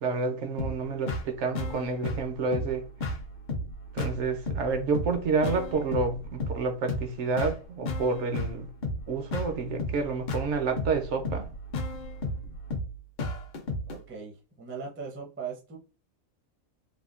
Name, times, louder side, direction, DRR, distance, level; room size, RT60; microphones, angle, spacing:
voice 1, 0.0-2.9 3.9-8.7 9.1-11.5, right 4 dB, 65° right, 0.8 m, -29 dB
sound 1, 0.6-14.0, left 2 dB, 65° left, 0.4 m, -34 dB
voice 2, 13.9-15.8, right 5 dB, 15° right, 0.4 m, -39 dB
3.5 x 2.2 x 2.4 m
omnidirectional pair, 1.4 m